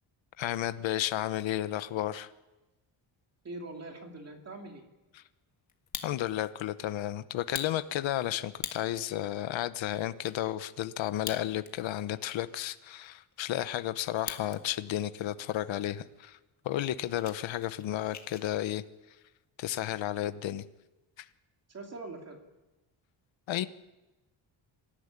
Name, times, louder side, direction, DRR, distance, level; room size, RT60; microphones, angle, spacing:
voice 1, 0.4-2.3 5.1-5.2 6.0-16.4 16.6-18.8 19.6-20.6 21.2-21.3 23.5-23.7, left 13 dB, 75° left, 12 dB, 1.1 m, -32 dB
voice 2, 3.4-4.9 21.7-22.4, right 2 dB, 35° right, 3 dB, 2.7 m, -43 dB
Fire, 5.7-6.5 6.9-7.0 7.4-9.1 9.6-9.7 9.9-10.4 11.1-11.9 12.2-12.3 12.9-14.6 14.9-15.4 15.9-16.0 16.3-16.5 16.8-18.5, left 7 dB, 40° left, 1.6 m, -43 dB
25.5 x 13.5 x 9.9 m, 1.1 s
cardioid pair, 175°, 46 cm